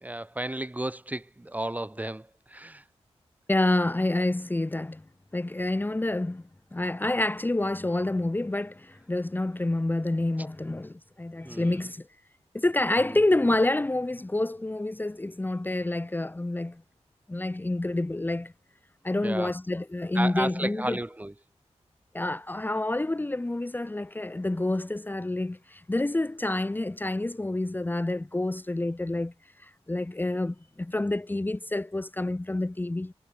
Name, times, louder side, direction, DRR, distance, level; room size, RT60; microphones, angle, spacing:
voice 1, 0.0-2.8 11.4-11.9 13.0-13.2 19.2-19.5 20.1-21.3, right 1 dB, 15° right, 1.6 m, -33 dB
voice 2, 3.5-5.0 5.3-6.4 6.7-12.1 12.5-16.8 17.3-18.5 19.0-21.0 22.1-33.1, left 2 dB, 15° left, 1.2 m, -28 dB
wide cardioid pair, 110°, 11 cm